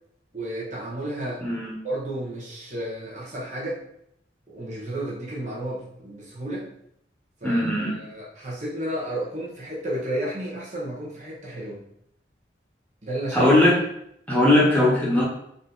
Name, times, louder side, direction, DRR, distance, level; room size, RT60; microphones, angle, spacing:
voice 1, 0.3-1.4 1.8-3.8 4.5-6.7 7.4-11.8 13.0-13.5, right 1 dB, 40° right, -5 dB, 1.2 m, -32 dB
voice 2, 1.4-1.7 7.4-7.9 13.3-13.7 14.3-15.2, left 1 dB, 10° left, -7 dB, 1.2 m, -19 dB
4.2 x 2.8 x 4.0 m, 0.73 s
head